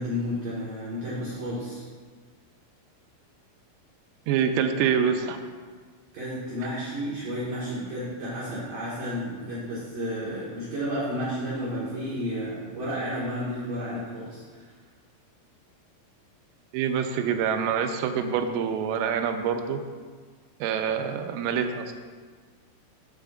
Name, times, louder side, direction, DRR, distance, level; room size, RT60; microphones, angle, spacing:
voice 1, 0.0-1.8 6.1-14.7, equal, 60° right, -9 dB, 2.6 m, -32 dB
voice 2, 4.3-5.4 16.7-19.8 20.6-21.9, right 7 dB, 90° right, 6 dB, 3.3 m, -26 dB
13.0 x 7.7 x 2.5 m, 1.6 s
omnidirectional pair, 5.9 m